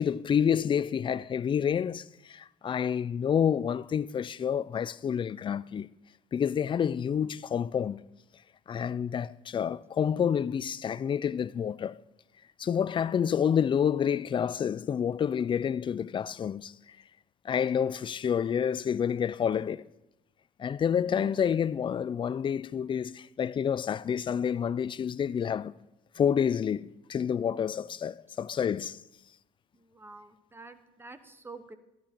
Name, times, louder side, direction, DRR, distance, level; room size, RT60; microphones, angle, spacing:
voice 1, 0.0-5.9 6.3-8.0 8.7-12.0 12.6-16.7 17.4-19.8 20.6-25.7 26.2-29.0, left 8 dB, 30° left, 0.4 m, -28 dB
voice 2, 21.1-21.4 29.9-31.8, right 3 dB, 15° right, 0.9 m, -47 dB
13.0 x 12.0 x 4.5 m
cardioid pair, 110°, 17 cm